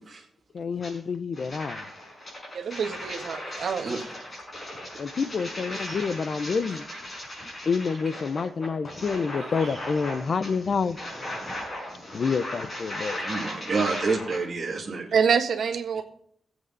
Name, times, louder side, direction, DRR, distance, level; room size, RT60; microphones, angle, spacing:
voice 1, 0.5-1.8 5.0-6.8 7.7-11.0 12.1-13.2, left 5 dB, 45° left, 0.6 m, -28 dB
sound 1, 0.8-0.9 1.3-14.4, left 1 dB, 25° left, 5.5 m, -37 dB
voice 2, 2.5-3.9 15.1-16.0, right 6 dB, 60° right, 1.5 m, -26 dB
voice 3, 5.7-6.1 6.4-7.0 9.4-9.7 13.2-15.1, right 4 dB, 30° right, 2.5 m, -30 dB
21.5 x 8.1 x 4.0 m
wide cardioid pair, 170°, 0 cm